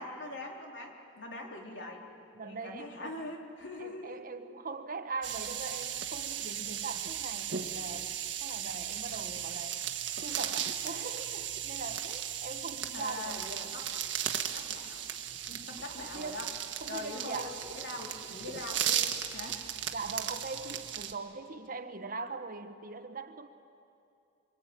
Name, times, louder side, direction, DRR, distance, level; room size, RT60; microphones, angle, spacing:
voice 1, 0.0-2.0 2.4-4.2 12.9-13.9 14.2-15.1 15.7-16.5 16.9-19.0 19.3-19.6, left 2 dB, 70° left, 1 dB, 3.8 m, -42 dB
voice 2, 2.3-3.2 3.8-9.8 10.2-13.5 15.5-16.5 16.8-17.5 19.9-23.5, right 4 dB, 50° right, 9 dB, 1.3 m, -41 dB
sound 1, 5.2-21.1, right 9 dB, 75° right, 1.6 m, -36 dB
25.5 x 24.0 x 9.1 m, 2.7 s
head